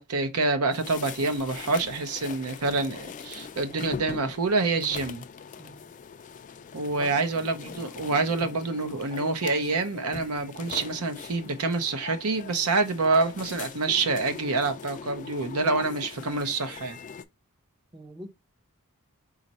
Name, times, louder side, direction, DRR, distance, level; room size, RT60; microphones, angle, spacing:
voice 1, 0.0-5.2 6.7-17.0, right 3 dB, 75° right, 0.7 m, -27 dB
sound 1, 0.7-17.2, left 6 dB, 35° left, 0.3 m, -42 dB
voice 2, 5.6-6.0 7.0-7.2 17.9-18.3, equal, 20° right, 0.6 m, -44 dB
4.1 x 2.4 x 4.0 m
head